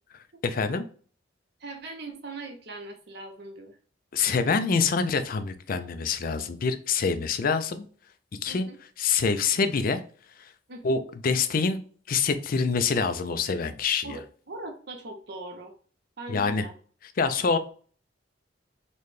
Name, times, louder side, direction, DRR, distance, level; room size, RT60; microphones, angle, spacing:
voice 1, 0.4-0.8 4.1-7.8 8.4-8.7 9.0-10.0 10.4-10.5 10.8-11.8 12.1-14.2 16.3-16.7 17.2-17.6, left 5 dB, 50° left, 10 dB, 0.4 m, -26 dB
voice 2, 1.6-3.8 4.8-4.9 8.5-8.8 10.7-11.0 14.0-15.7 16.2-16.7, right 2 dB, 60° right, 4 dB, 0.7 m, -40 dB
4.0 x 2.2 x 3.2 m, 0.43 s
head